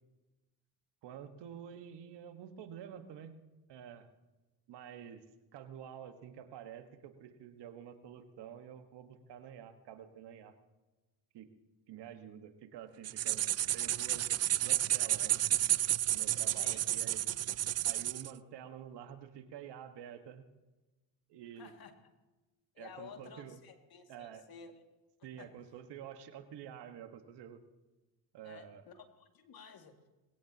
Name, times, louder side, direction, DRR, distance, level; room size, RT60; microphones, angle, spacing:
voice 1, 1.0-3.4 3.7-4.1 4.7-5.2 5.5-10.5 11.3-11.5 11.9-14.3 14.6-15.7 16.1-17.3 17.8-20.4 21.3-21.7 22.8-23.6 24.1-24.4 25.2-27.6 28.3-28.9, right 9 dB, 65° right, 8 dB, 1.6 m, -49 dB
sound 1, 13.0-18.3, right 13 dB, 35° right, 0.4 m, -31 dB
voice 2, 16.5-16.8 21.5-21.9 22.7-24.8 25.4-25.5 28.4-30.1, left 6 dB, 55° left, 4 dB, 2.4 m, -53 dB
21.5 x 17.0 x 2.9 m, 1.1 s
supercardioid pair, 75°, 44 cm